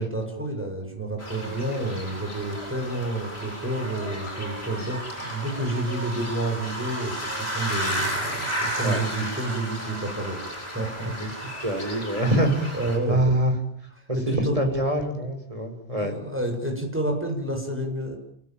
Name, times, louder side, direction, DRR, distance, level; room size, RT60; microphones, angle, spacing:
voice 1, 0.0-10.4 10.7-11.6 12.7-13.3 14.1-14.6 16.0-18.2, right 1 dB, 10° right, 2 dB, 7.2 m, -30 dB
sound 1, 1.2-13.0, right 1 dB, 55° left, 8.5 m, -33 dB
voice 2, 11.6-12.8 13.1-13.5 14.1-16.2, right 1 dB, 25° right, 5 dB, 5.6 m, -25 dB
29.0 x 18.5 x 9.1 m, 0.67 s
omnidirectional pair, 1.3 m